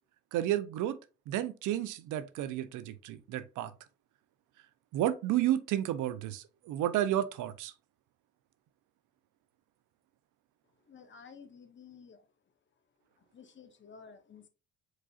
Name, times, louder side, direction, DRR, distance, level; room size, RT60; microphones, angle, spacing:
voice 1, 0.3-1.0 1.3-3.7 4.9-7.7, right 12 dB, 90° right, 0.6 m, -31 dB
voice 2, 10.8-12.3 13.2-14.5, left 6 dB, 40° left, 1.0 m, -53 dB
5.0 x 4.1 x 2.4 m
cardioid pair, 90°, 30 cm